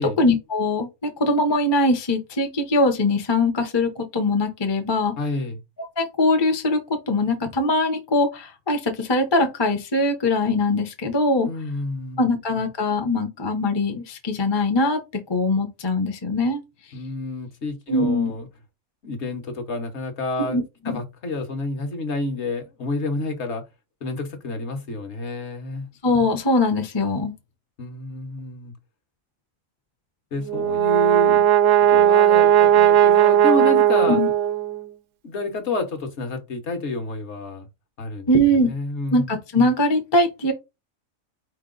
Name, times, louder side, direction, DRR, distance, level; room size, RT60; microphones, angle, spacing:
voice 1, 0.2-5.1 6.0-6.8 7.1-11.5 12.2-15.0 15.3-16.6 17.9-18.3 20.4-21.0 26.0-27.3 34.1-34.3 38.3-38.7 39.1-40.5, left 2 dB, 25° left, 0.6 m, -21 dB
voice 2, 5.2-5.6 11.4-12.3 16.9-18.5 19.0-20.6 20.8-23.6 24.0-25.9 27.8-28.7 30.3-31.4 31.9-34.3 35.2-37.7 38.0-38.3 38.6-39.3, left 2 dB, 55° left, 1.3 m, -29 dB
Brass instrument, 30.4-34.8, right 11 dB, 70° right, 0.8 m, -16 dB
4.4 x 2.9 x 3.8 m
omnidirectional pair, 1.4 m